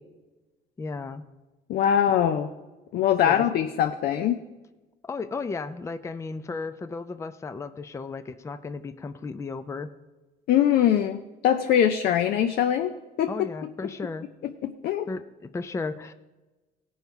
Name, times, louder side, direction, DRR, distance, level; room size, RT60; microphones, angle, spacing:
voice 1, 0.8-1.2 3.2-3.5 5.0-9.9 13.3-14.3 15.1-16.1, left 4 dB, 15° left, 10 dB, 0.4 m, -34 dB
voice 2, 1.7-2.5 2.9-4.4 10.5-12.9 13.2-13.3 14.6-15.1, left 10 dB, 65° left, 7 dB, 0.6 m, -22 dB
16.5 x 5.5 x 4.7 m, 1.1 s
cardioid pair, 110°, 17 cm